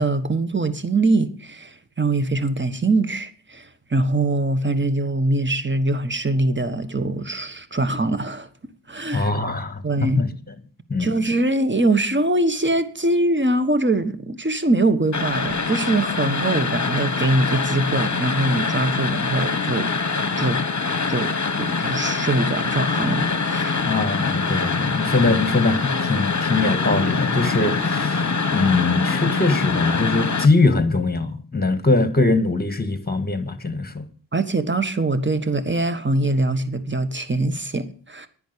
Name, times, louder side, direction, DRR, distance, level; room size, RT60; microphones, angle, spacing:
voice 1, 0.0-8.5 8.9-9.3 9.8-10.2 11.0-19.9 20.4-20.6 21.1-21.3 21.6-23.8 34.3-38.3, right 2 dB, 25° right, 1.3 m, -23 dB
voice 2, 9.1-10.3 10.9-11.1 23.8-34.1, left 3 dB, 20° left, 1.8 m, -22 dB
sound 1, 15.1-30.5, left 4 dB, 40° left, 1.1 m, -24 dB
10.5 x 10.0 x 6.8 m
wide cardioid pair, 60°, 43 cm